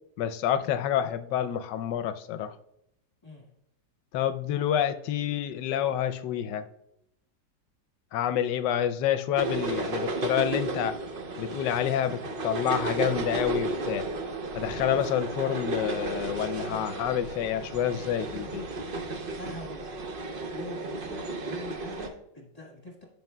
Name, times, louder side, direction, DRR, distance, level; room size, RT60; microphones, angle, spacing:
voice 1, 0.2-2.5 4.1-6.7 8.1-11.0 11.4-14.0 14.6-18.7, left 10 dB, 75° left, 10 dB, 1.2 m, -28 dB
sound 1, 9.3-22.1, right 2 dB, 75° right, 0.5 m, -33 dB
voice 2, 14.9-15.2 19.3-20.1 20.5-23.0, left 1 dB, 20° left, -1 dB, 1.4 m, -44 dB
15.0 x 5.3 x 2.2 m, 0.79 s
omnidirectional pair, 2.0 m